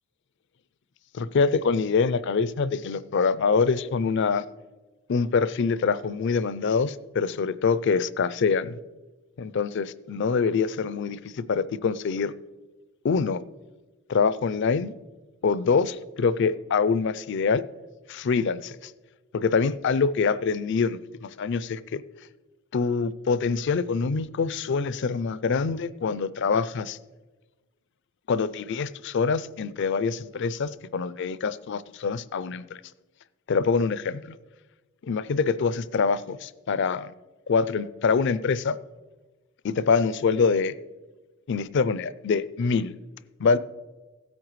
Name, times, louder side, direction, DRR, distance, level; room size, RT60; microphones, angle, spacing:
voice 1, 1.1-4.4 5.1-8.8 9.4-12.3 13.0-13.4 14.1-14.9 15.4-17.6 18.1-18.9 19.3-22.0 22.7-27.0 28.3-32.6 33.5-34.4 35.0-37.1 37.5-38.8 39.6-40.7 41.5-42.9 43.4-43.6, left 5 dB, 60° left, 16 dB, 0.4 m, -25 dB
15.5 x 8.7 x 3.1 m, 1.2 s
head